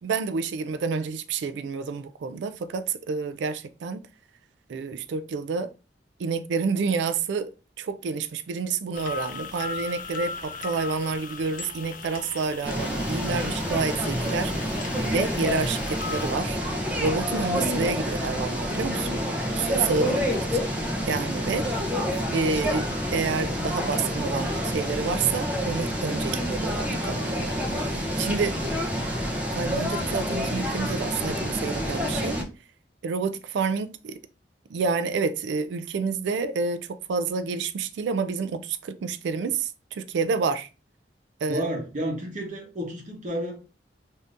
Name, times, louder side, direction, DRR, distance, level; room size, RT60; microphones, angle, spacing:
voice 1, 0.0-4.0 4.7-5.7 6.2-7.5 7.8-14.7 15.1-16.6 17.0-19.1 19.5-20.4 21.1-21.7 22.3-28.6 29.5-32.4 33.0-34.2 34.7-40.7 41.4-41.7, right 5 dB, 75° right, 0.3 m, -29 dB
sound 1, 8.9-16.3, left 5 dB, 50° left, 0.4 m, -38 dB
sound 2, 12.6-32.4, equal, 10° right, 0.6 m, -28 dB
voice 2, 41.5-43.6, equal, 45° right, 0.9 m, -31 dB
3.5 x 2.7 x 2.4 m
head